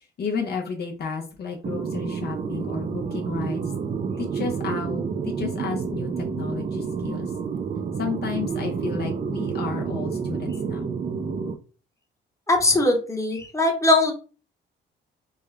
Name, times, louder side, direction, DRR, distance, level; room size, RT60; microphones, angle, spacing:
voice 1, 0.2-3.6 4.2-7.3 8.0-11.0, left 5 dB, 55° left, 1 dB, 0.8 m, -32 dB
sound 1, 1.6-11.5, right 6 dB, 35° right, 0.4 m, -29 dB
voice 2, 12.5-14.1, left 2 dB, 15° left, 2 dB, 0.9 m, -20 dB
3.5 x 2.2 x 3.2 m, 0.36 s
cardioid pair, 90°, 20 cm